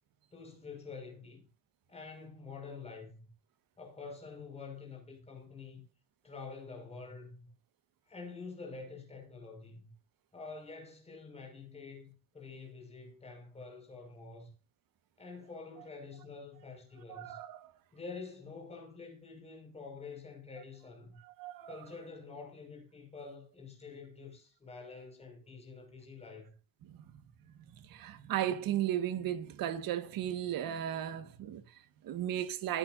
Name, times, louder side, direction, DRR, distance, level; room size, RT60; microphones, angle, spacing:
voice 1, 0.3-1.4 1.9-3.3 3.8-5.8 6.2-7.5 8.1-9.9 10.3-14.5 15.2-17.4 17.9-21.2 21.7-26.5, left 4 dB, 15° left, 5.8 m, -47 dB
voice 2, 17.1-17.7 21.2-21.9 26.9-27.1 27.7-32.8, right 11 dB, 65° right, 1.7 m, -36 dB
21.5 x 10.0 x 2.7 m
cardioid pair, 170°, 36 cm